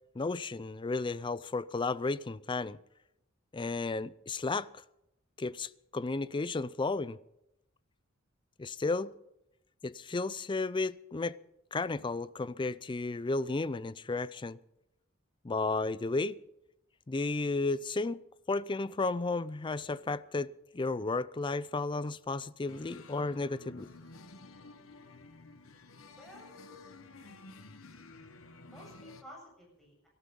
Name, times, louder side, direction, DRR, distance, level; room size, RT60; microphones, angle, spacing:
voice 1, 0.1-2.8 3.5-4.7 5.4-7.2 8.6-9.1 9.8-11.4 11.7-14.6 15.4-16.4 17.1-18.2 18.5-23.9, left 3 dB, 25° left, 0.5 m, -33 dB
sound 1, 22.7-29.2, left 3 dB, 75° left, 1.2 m, -52 dB
voice 2, 26.2-27.5 28.6-30.1, left 1 dB, ahead, 7.8 m, -54 dB
18.0 x 13.5 x 5.3 m
head